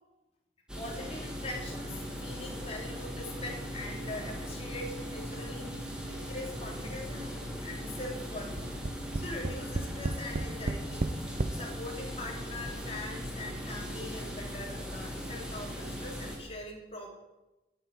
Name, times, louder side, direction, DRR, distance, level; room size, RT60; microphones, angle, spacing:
sound 1, 0.7-16.4, equal, 5° right, 2.4 m, -39 dB
voice 1, 0.8-7.3 7.6-8.6 9.1-17.2, left 2 dB, 35° left, -1 dB, 3.2 m, -42 dB
Tap, 8.6-11.6 12.4-12.5 12.8-12.9, right 2 dB, 45° right, 0.7 m, -32 dB
9.7 x 9.7 x 9.0 m, 1.0 s
head